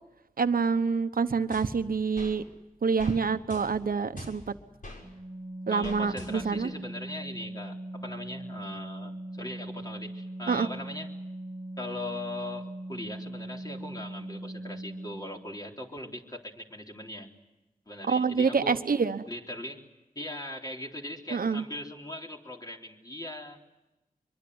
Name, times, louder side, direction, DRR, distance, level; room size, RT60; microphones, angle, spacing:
voice 1, 0.4-2.4 2.8-4.4 5.7-6.7 10.5-10.7 18.1-19.2 21.3-21.6, right 5 dB, 75° right, 10 dB, 1.2 m, -26 dB
sound 1, 1.5-2.4 3.0-3.2 3.5-5.0 5.8-6.6, left 1 dB, 65° left, 6.5 m, -45 dB
Organ, 5.0-15.6, right 1 dB, 30° right, 1.4 m, -40 dB
voice 2, 5.7-11.1 11.8-17.3 17.9-18.8 19.3-19.8 20.2-23.6, left 1 dB, 25° left, 0 dB, 3.9 m, -40 dB
24.0 x 23.5 x 8.0 m, 1.0 s
cardioid pair, 50°, 15 cm